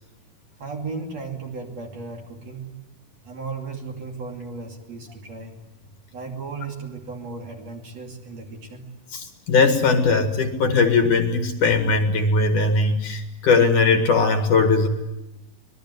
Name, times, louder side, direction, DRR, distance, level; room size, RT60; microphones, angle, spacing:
voice 1, 0.6-2.7 3.2-5.5 6.1-8.8, right 4 dB, 45° right, 2 dB, 3.5 m, -35 dB
voice 2, 9.1-14.9, left 4 dB, 55° left, 7 dB, 3.0 m, -19 dB
25.0 x 21.0 x 9.5 m, 0.98 s
omnidirectional pair, 4.7 m